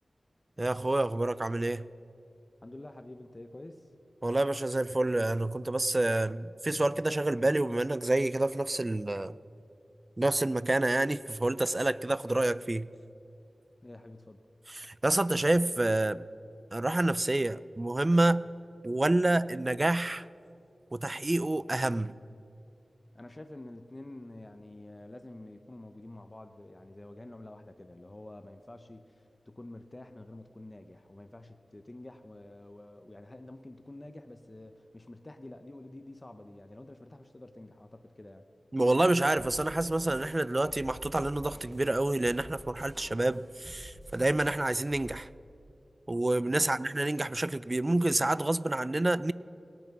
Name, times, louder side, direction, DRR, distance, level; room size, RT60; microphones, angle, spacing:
voice 1, 0.6-1.9 4.2-9.4 10.2-12.9 14.7-16.2 16.7-18.5 18.8-20.3 20.9-22.1 38.7-45.3 46.1-49.3, right 2 dB, 35° right, 0.4 m, -28 dB
voice 2, 2.6-3.9 13.8-14.5 23.1-38.5 46.6-46.8, left 1 dB, 35° left, 0.7 m, -48 dB
sound 1, 39.4-45.1, equal, 20° right, 2.9 m, -50 dB
17.5 x 9.0 x 5.9 m
cardioid pair, 50°, 0 cm